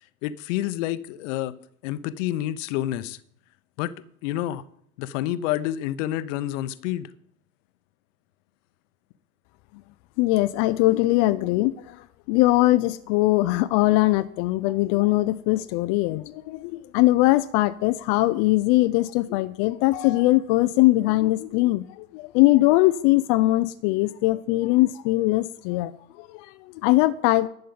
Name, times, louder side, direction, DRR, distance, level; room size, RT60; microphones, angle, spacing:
voice 1, 0.2-1.6 1.8-3.2 3.8-3.9 4.2-4.6 5.0-7.1, left 13 dB, 50° left, 0.8 m, -28 dB
voice 2, 10.2-12.0 12.3-25.9 26.2-27.5, left 18 dB, 35° left, 0.4 m, -21 dB
11.5 x 6.6 x 7.0 m
hypercardioid pair, 100°, 47 cm